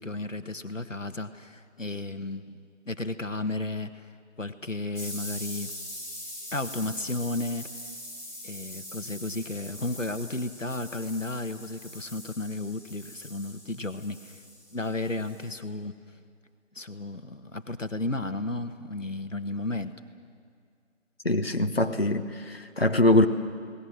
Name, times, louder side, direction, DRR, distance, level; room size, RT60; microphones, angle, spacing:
voice 1, 0.0-2.6 2.8-4.1 4.4-5.7 6.5-7.7 8.4-14.4 14.7-16.0 16.7-20.0, left 2 dB, 75° left, 9 dB, 1.6 m, -33 dB
sound 1, 4.9-15.6, left 1 dB, 15° left, 2.3 m, -42 dB
voice 2, 21.2-23.3, left 1 dB, 50° left, 6 dB, 1.2 m, -23 dB
29.5 x 19.0 x 7.5 m, 2.1 s
figure-of-eight pair, 170°, 39 cm